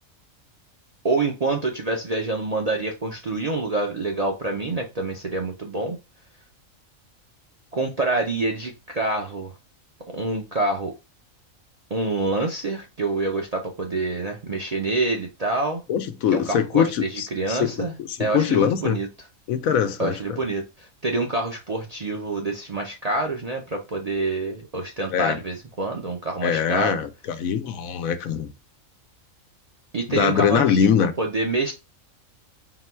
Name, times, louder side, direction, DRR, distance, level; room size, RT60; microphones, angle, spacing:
voice 1, 1.0-6.0 7.7-9.5 10.1-10.9 11.9-15.8 16.3-17.9 18.2-19.1 20.0-27.0 29.9-30.9 31.2-31.7, right 2 dB, 50° right, 0.4 m, -26 dB
voice 2, 15.9-19.0 19.5-20.4 25.1-25.4 26.4-28.5 30.1-31.1, left 8 dB, 90° left, 1.1 m, -23 dB
3.9 x 2.2 x 4.3 m
omnidirectional pair, 1.4 m